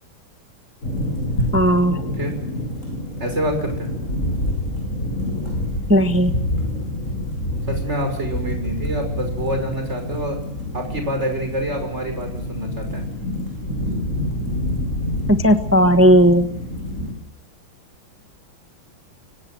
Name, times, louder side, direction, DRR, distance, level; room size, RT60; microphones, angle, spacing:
sound 1, 0.8-17.1, left 1 dB, 35° left, 7.7 m, -27 dB
voice 1, 1.5-2.0 5.9-6.4 15.3-16.4, equal, 10° right, 8 dB, 1.0 m, -15 dB
voice 2, 3.2-3.9 7.5-10.4 10.7-13.0, equal, 30° right, 5 dB, 6.3 m, -26 dB
25.0 x 17.5 x 7.8 m, 0.76 s
omnidirectional pair, 2.3 m